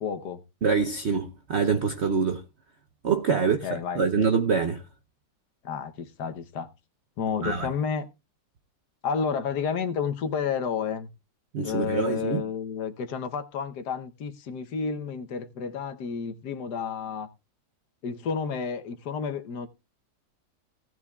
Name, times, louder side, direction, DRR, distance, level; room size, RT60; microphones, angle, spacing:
voice 1, 0.0-0.4 3.4-4.0 5.6-6.7 7.2-8.1 9.0-11.1 11.6-17.3 18.0-19.7, left 6 dB, 65° left, 1.5 m, -31 dB
voice 2, 0.6-2.4 3.0-4.8 7.4-7.7 11.5-12.4, right 5 dB, 50° right, 0.8 m, -25 dB
17.0 x 9.7 x 2.3 m
omnidirectional pair, 1.9 m